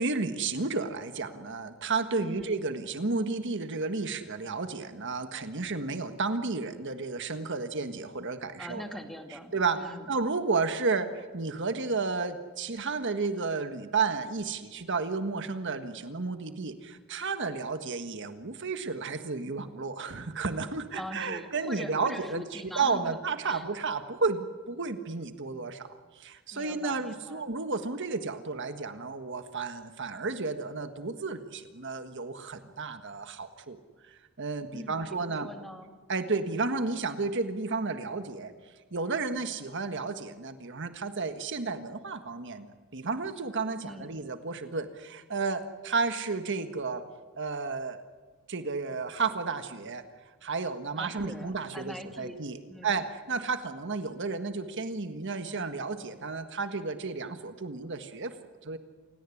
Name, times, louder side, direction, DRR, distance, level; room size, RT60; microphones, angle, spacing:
voice 1, 0.0-8.8 9.5-9.8 10.1-25.9 26.1-33.8 34.0-35.5 36.1-38.5 38.9-42.7 42.9-47.0 47.3-48.0 48.5-50.0 50.4-58.3 58.6-58.8, right 4 dB, 60° right, 9 dB, 1.6 m, -32 dB
voice 2, 8.6-10.1 20.9-23.2 23.4-23.6 26.5-27.5 34.7-35.9 43.8-44.2 51.0-52.3 52.7-53.1, equal, ahead, 5 dB, 2.2 m, -42 dB
28.0 x 18.0 x 9.9 m, 1.4 s
head